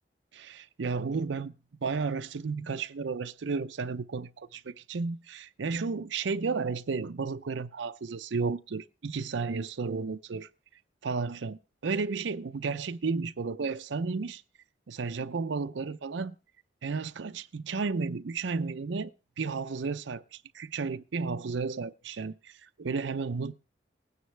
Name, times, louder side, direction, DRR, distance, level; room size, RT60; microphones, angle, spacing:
voice 1, 0.3-1.5 1.8-10.5 11.0-14.4 14.9-16.3 16.8-23.6, right 4 dB, 75° right, 0.5 m, -33 dB
19.5 x 9.6 x 3.3 m
head